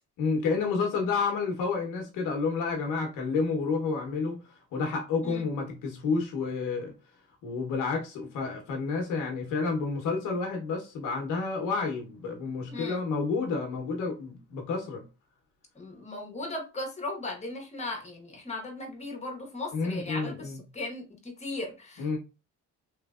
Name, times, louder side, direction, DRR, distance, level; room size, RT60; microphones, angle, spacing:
voice 1, 0.2-4.4 4.7-6.9 7.4-15.0 19.7-20.6 22.0-22.2, left 4 dB, 90° left, 0.9 m, -30 dB
voice 2, 12.7-13.0 15.7-22.1, left 2 dB, 20° left, 1.2 m, -37 dB
3.2 x 2.8 x 2.3 m
cardioid pair, 90°, 30 cm